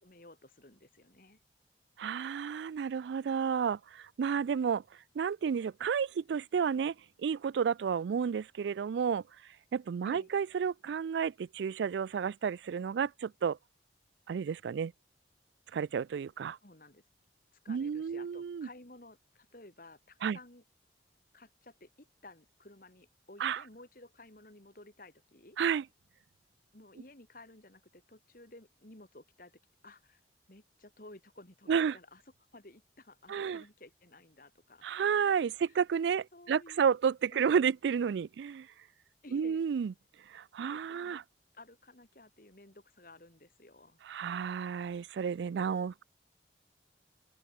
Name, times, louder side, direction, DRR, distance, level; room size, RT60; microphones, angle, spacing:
voice 1, 0.0-1.4 10.0-10.3 16.6-17.0 17.6-20.6 21.3-25.6 26.7-30.2 30.5-32.2 32.5-34.9 35.6-35.7 36.3-36.9 37.3-37.5 39.2-39.6 40.6-41.2 41.5-44.0, left 2 dB, 50° left, 3.0 m, -55 dB
voice 2, 2.0-4.8 5.2-9.2 9.7-13.6 14.3-14.9 15.7-16.6 17.7-18.7 20.2-20.4 23.4-23.6 25.6-25.8 31.7-32.0 33.3-33.6 34.8-38.7 39.3-39.9 40.3-41.2 44.0-46.0, right 7 dB, 80° right, 0.3 m, -31 dB
open air
head